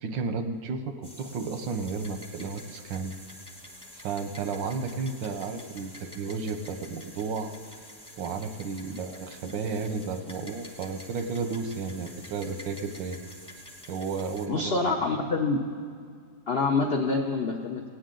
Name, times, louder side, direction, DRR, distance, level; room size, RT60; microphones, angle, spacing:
voice 1, 0.0-3.1 3.9-7.5 8.2-13.2 13.9-14.9, right 4 dB, 90° right, 7 dB, 1.5 m, -33 dB
sound 1, 1.0-14.5, left 1 dB, 5° left, 0.8 m, -48 dB
voice 2, 14.5-15.6 16.5-17.8, left 3 dB, 70° left, 1 dB, 0.5 m, -26 dB
17.5 x 9.4 x 3.8 m, 2.2 s
omnidirectional pair, 2.0 m